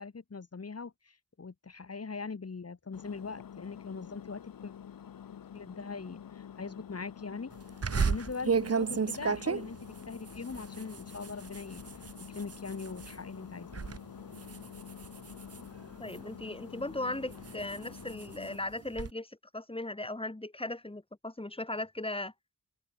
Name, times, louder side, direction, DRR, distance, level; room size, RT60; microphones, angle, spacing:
voice 1, 0.0-4.7 5.5-7.5 7.9-12.0 12.3-13.8, left 4 dB, 45° left, 7.0 m, -41 dB
Engine, 2.9-18.6, left 9 dB, 75° left, 2.6 m, -48 dB
sound 1, 7.8-13.2 13.6-14.0 14.3-16.4 16.9-19.1, right 5 dB, 45° right, 2.2 m, -34 dB
voice 2, 16.0-22.3, left 2 dB, 15° left, 7.2 m, -37 dB
cardioid pair, 65°, 35 cm